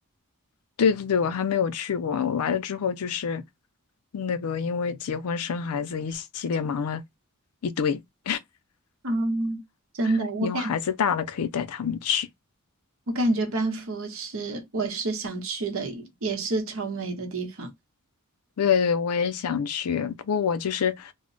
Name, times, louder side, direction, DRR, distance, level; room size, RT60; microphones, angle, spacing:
voice 1, 0.8-3.4 4.1-7.0 7.6-8.0 8.3-8.4 10.4-12.3 18.6-21.1, left 7 dB, 90° left, 0.4 m, -26 dB
voice 2, 9.0-9.6 10.0-10.7 13.1-17.7, right 2 dB, 65° right, 0.9 m, -28 dB
2.1 x 2.0 x 3.7 m
head